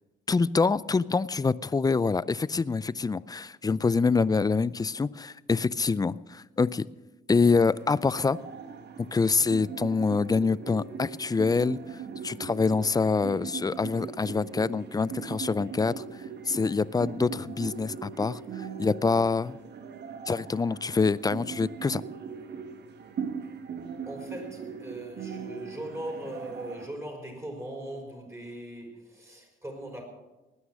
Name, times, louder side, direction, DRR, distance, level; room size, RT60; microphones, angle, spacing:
voice 1, 0.3-6.8 7.3-8.4 9.0-11.8 12.2-16.0 16.5-19.6 20.3-22.0, left 4 dB, 20° left, 19 dB, 0.4 m, -26 dB
sound 1, 7.6-26.9, right 6 dB, 60° right, 1.4 m, -40 dB
voice 2, 24.1-30.0, right 1 dB, 15° right, 2 dB, 5.4 m, -39 dB
19.5 x 9.7 x 6.4 m, 1.1 s
cardioid pair, 90°, 20 cm